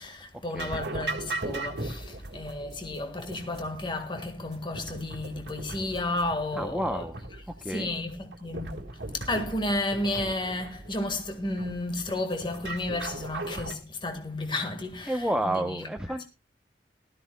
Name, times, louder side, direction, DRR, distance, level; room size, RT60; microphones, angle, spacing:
voice 1, 0.0-7.0 7.7-15.2 15.4-15.6, left 2 dB, 25° left, 1.6 m, -32 dB
sound 1, 0.6-13.7, right 2 dB, 75° right, 1.7 m, -39 dB
voice 2, 6.5-7.1 7.5-7.9 15.1-16.2, right 1 dB, 5° right, 0.7 m, -30 dB
18.0 x 13.5 x 2.2 m
head